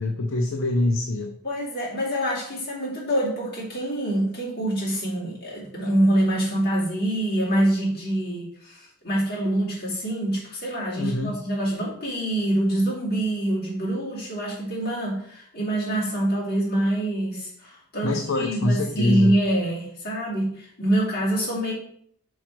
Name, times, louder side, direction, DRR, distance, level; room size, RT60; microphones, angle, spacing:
voice 1, 0.0-1.4 11.0-11.4 18.0-19.3, left 2 dB, 65° left, 3 dB, 0.6 m, -24 dB
voice 2, 1.4-21.7, right 1 dB, 45° left, -7 dB, 2.5 m, -25 dB
6.4 x 4.3 x 4.5 m, 0.64 s
head